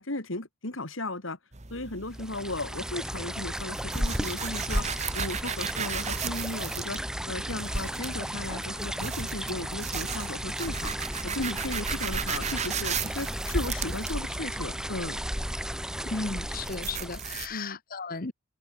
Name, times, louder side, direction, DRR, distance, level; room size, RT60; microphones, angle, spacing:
voice 1, 0.0-1.4 1.7-4.9 5.1-7.0 7.3-11.0 11.2-15.2 17.5-17.8, left 2 dB, 70° left, 2.9 m, -35 dB
sound 1, 1.5-17.5, right 7 dB, 35° right, 1.3 m, -37 dB
sound 2, 2.1-17.5, equal, 5° right, 2.7 m, -34 dB
sound 3, 5.4-9.7, right 2 dB, 75° right, 5.3 m, -52 dB
voice 2, 16.0-18.3, left 3 dB, 45° left, 1.2 m, -35 dB
head